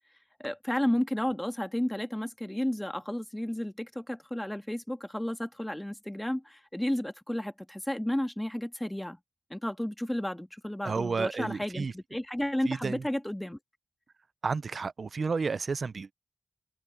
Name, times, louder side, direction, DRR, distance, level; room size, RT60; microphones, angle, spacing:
voice 1, 0.4-9.2 9.5-13.6, left 1 dB, 10° left, 1.7 m, -32 dB
voice 2, 10.8-11.9 12.7-13.0 14.4-16.1, right 4 dB, 65° right, 0.5 m, -31 dB
cardioid pair, 50°, 0 cm